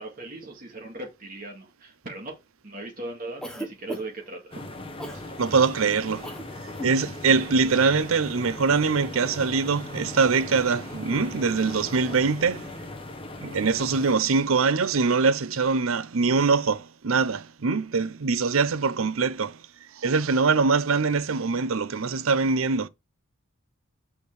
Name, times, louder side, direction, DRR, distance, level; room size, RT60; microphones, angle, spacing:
voice 1, 0.0-2.4 2.6-4.6, right 2 dB, 45° right, 2.0 m, -38 dB
Cough, 3.4-4.3 5.0-5.2 6.2-6.5 6.7-7.0, equal, 5° left, 1.1 m, -36 dB
Rain on tin roof dripping onto tin window sills, 4.5-14.1, left 2 dB, 25° left, 1.3 m, -39 dB
voice 2, 5.4-6.3 6.8-12.7 13.4-19.6 20.0-22.9, right 4 dB, 80° right, 0.6 m, -23 dB
6.6 x 5.1 x 3.3 m
head